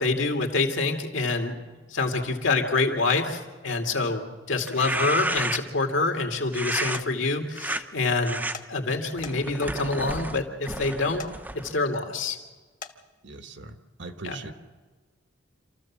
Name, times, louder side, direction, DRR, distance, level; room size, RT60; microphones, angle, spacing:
voice 1, 0.0-1.5 1.9-8.4 8.7-11.2 11.5-12.4 14.2-14.4, left 3 dB, 75° left, 3 dB, 2.4 m, -26 dB
sound 1, 4.6-5.8 6.5-7.0 7.5-7.8 8.2-8.5 9.2-11.8, right 2 dB, 10° right, 0.7 m, -31 dB
sound 2, 6.9-7.1 8.5-8.7 9.2-9.7 11.2-11.3 12.8-13.0, left 5 dB, 45° left, 1.3 m, -39 dB
voice 2, 13.2-14.5, right 3 dB, 65° right, 7 dB, 1.4 m, -41 dB
27.0 x 14.0 x 7.3 m, 1.3 s
head